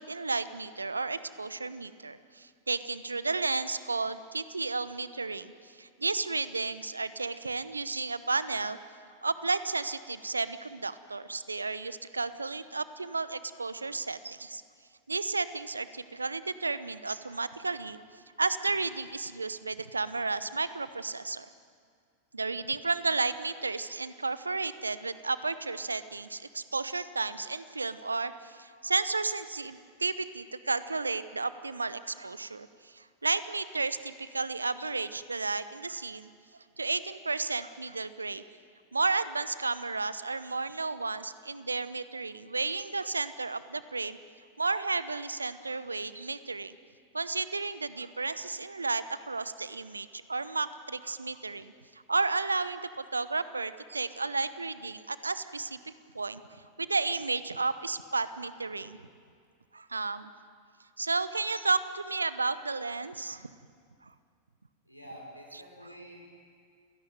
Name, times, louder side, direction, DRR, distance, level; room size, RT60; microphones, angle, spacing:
voice 1, 0.0-8.8 9.2-14.6 15.1-18.0 18.4-21.5 22.3-36.3 36.8-38.4 38.9-44.2 44.6-46.8 47.1-59.0 59.7-60.3 61.0-63.5 64.0-64.1, right 3 dB, 80° right, 14 dB, 0.9 m, -33 dB
voice 2, 64.8-66.3, equal, 90° left, 0 dB, 5.6 m, -48 dB
29.0 x 17.5 x 9.3 m, 2.2 s
figure-of-eight pair, 90°, 0 cm